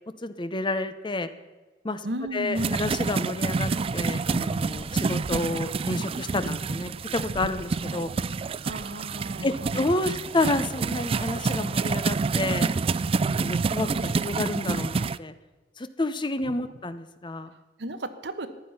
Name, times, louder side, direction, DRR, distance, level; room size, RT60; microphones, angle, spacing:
voice 1, 0.2-1.3 1.8-2.0 2.3-8.1 9.4-12.7 13.4-15.3 15.8-17.5, left 2 dB, 25° left, 11 dB, 0.8 m, -30 dB
voice 2, 2.0-2.8 8.6-10.2 17.5-18.5, right 1 dB, 70° right, 10 dB, 1.2 m, -34 dB
sound 1, 2.6-15.2, right 4 dB, 30° right, 0.3 m, -28 dB
14.5 x 10.5 x 5.6 m, 1.2 s
head